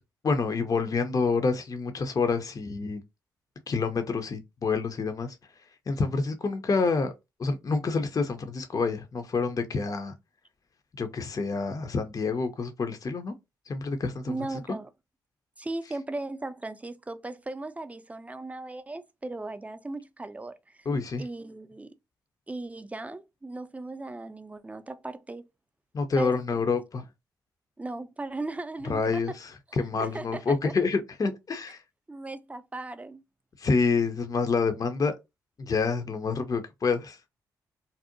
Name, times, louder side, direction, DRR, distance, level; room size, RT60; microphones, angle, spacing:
voice 1, 0.2-3.0 3.7-5.4 5.9-7.1 7.4-10.1 11.0-13.3 13.7-14.3 20.9-21.2 25.9-27.0 28.8-29.5 29.8-31.8 33.6-35.1 35.6-37.2, left 4 dB, 40° left, 0.5 m, -27 dB
voice 2, 14.3-14.9 15.6-20.9 21.2-21.9 22.5-25.5 26.2-26.4 27.8-29.4 30.0-30.7 32.1-33.2, right 2 dB, 15° right, 0.4 m, -37 dB
2.6 x 2.0 x 2.5 m
hypercardioid pair, 40°, 9 cm